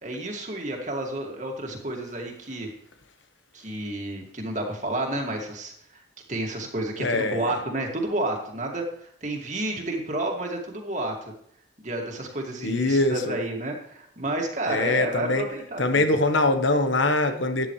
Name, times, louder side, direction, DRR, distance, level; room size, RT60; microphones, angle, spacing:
voice 1, 0.0-2.7 3.5-6.0 6.3-11.2 11.8-15.8, right 1 dB, 40° right, 1 dB, 2.3 m, -30 dB
voice 2, 7.0-7.5 12.6-13.4 14.7-15.5 15.8-17.7, left 2 dB, 85° left, 7 dB, 1.2 m, -23 dB
13.0 x 10.0 x 3.2 m, 0.70 s
head